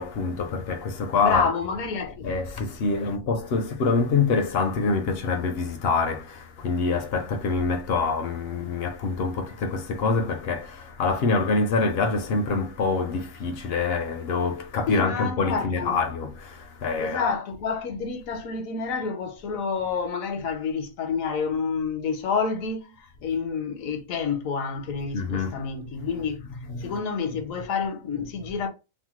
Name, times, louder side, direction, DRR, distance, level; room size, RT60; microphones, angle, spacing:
voice 1, 0.0-1.5 2.2-17.3 25.1-25.7 25.9-27.0 27.6-27.7, left 4 dB, 65° left, 0.6 m, -26 dB
voice 2, 1.2-2.3 14.9-16.0 17.0-26.4 26.8-28.7, left 5 dB, 80° left, 1.1 m, -28 dB
2.9 x 2.1 x 2.9 m
omnidirectional pair, 1.4 m